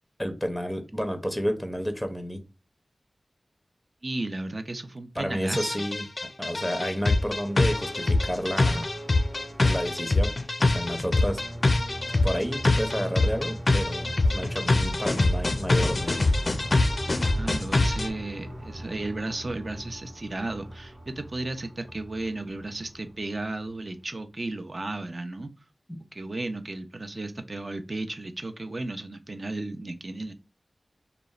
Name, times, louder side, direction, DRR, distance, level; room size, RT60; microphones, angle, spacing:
voice 1, 0.2-2.4 5.2-6.1 6.4-8.9 9.6-11.4 12.2-16.1 25.9-26.0, equal, ahead, 6 dB, 0.5 m, -31 dB
voice 2, 4.0-5.8 17.2-25.5 26.1-30.3, right 2 dB, 50° right, 8 dB, 0.4 m, -34 dB
sound 1, 5.5-18.1, left 2 dB, 55° left, 0.4 m, -24 dB
sound 2, 7.0-23.9, equal, 80° right, 1.0 m, -40 dB
2.9 x 2.1 x 2.3 m, 0.31 s
wide cardioid pair, 55°, 0 cm